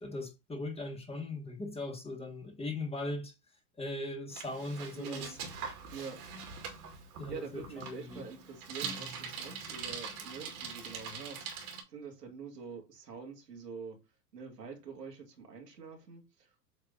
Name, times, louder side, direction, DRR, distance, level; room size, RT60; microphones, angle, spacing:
voice 1, 0.0-3.3 3.8-5.4 7.2-8.2, left 2 dB, 10° left, 1.6 m, -39 dB
Bicycle, 4.3-11.8, right 6 dB, 65° right, 2.2 m, -43 dB
voice 2, 5.0-5.4 5.9-6.2 7.3-14.0 14.3-16.7, right 5 dB, 85° right, 2.2 m, -46 dB
8.0 x 3.3 x 3.8 m
hypercardioid pair, 95°, 47 cm